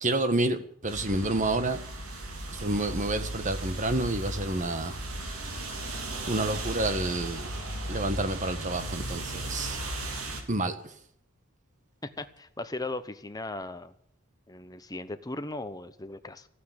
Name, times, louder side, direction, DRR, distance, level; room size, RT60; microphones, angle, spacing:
voice 1, 0.0-1.8 2.5-4.9 6.3-7.5 7.9-9.8 10.5-10.9, right 2 dB, 35° right, 10 dB, 1.4 m, -29 dB
sound 1, 0.9-10.4, right 1 dB, 80° right, 3.1 m, -36 dB
voice 2, 12.0-13.9 14.5-16.5, left 2 dB, 15° left, 10 dB, 1.0 m, -37 dB
14.5 x 9.3 x 9.9 m, 0.65 s
head